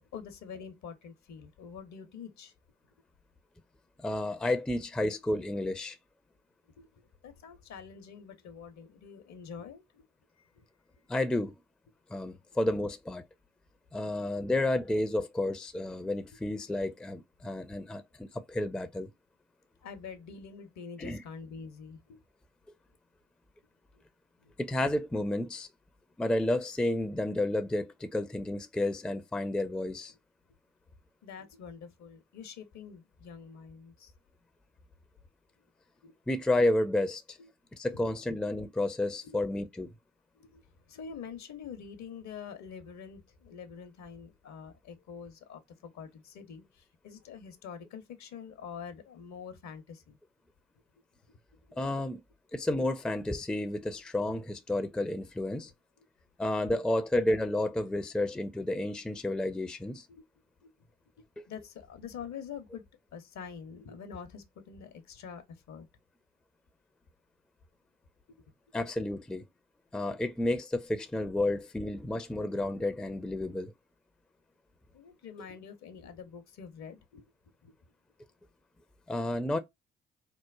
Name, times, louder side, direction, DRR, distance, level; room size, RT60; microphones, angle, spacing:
voice 1, 0.0-2.5 6.8-10.1 10.3-10.7 19.8-22.2 23.9-24.0 24.4-24.5 30.1-30.2 31.2-34.1 36.0-36.1 37.4-37.5 39.1-39.4 40.3-50.2 51.2-51.4 51.7-51.8 54.3-54.4 56.0-56.1 60.1-60.2 60.6-60.9 61.5-62.8 63.1-65.9 68.3-68.4 74.9-77.2 77.6-77.8, left 6 dB, 55° left, 0.7 m, -46 dB
voice 2, 4.0-6.0 11.1-11.6 12.1-13.2 13.9-19.1 21.0-21.2 24.6-25.7 26.2-30.1 36.3-37.4 37.7-39.9 51.8-52.2 52.5-55.7 56.4-60.0 61.4-61.5 68.7-69.4 69.9-73.7 79.1-79.6, left 1 dB, 5° left, 0.4 m, -31 dB
3.0 x 2.0 x 2.3 m
hypercardioid pair, 40°, 33 cm